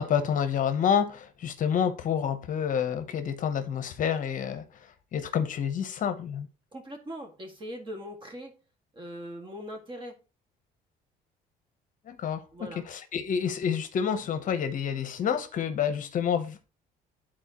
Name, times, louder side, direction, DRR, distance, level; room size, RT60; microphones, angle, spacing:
voice 1, 0.0-6.5 12.1-16.7, left 8 dB, 50° left, 0.9 m, -28 dB
voice 2, 6.7-8.5 8.9-10.2 12.5-12.8, equal, 30° right, 1.9 m, -40 dB
11.0 x 4.3 x 2.9 m
cardioid pair, 110°, 17 cm